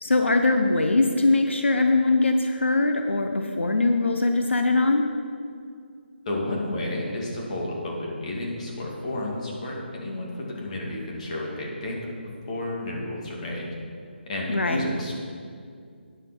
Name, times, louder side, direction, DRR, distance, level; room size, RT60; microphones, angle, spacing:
voice 1, 0.0-5.1 14.5-14.8, left 2 dB, 90° left, 5 dB, 0.9 m, -21 dB
voice 2, 6.2-12.1 12.4-13.7 14.2-15.1, left 1 dB, 40° left, -3 dB, 2.7 m, -31 dB
12.5 x 10.0 x 4.6 m, 2.3 s
figure-of-eight pair, 165°, 6 cm